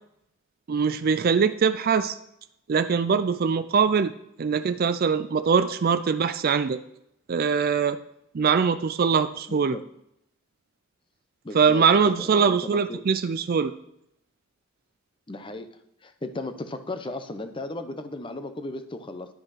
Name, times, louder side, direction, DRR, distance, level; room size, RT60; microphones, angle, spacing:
voice 1, 0.7-2.2 2.7-4.1 4.4-6.8 7.3-8.0 8.3-9.8 11.5-13.7, right 6 dB, 45° right, 10 dB, 0.4 m, -22 dB
voice 2, 9.5-9.8 11.4-13.3 15.3-15.7 16.0-19.3, left 2 dB, 25° left, 9 dB, 0.7 m, -36 dB
10.5 x 5.4 x 5.7 m, 0.78 s
head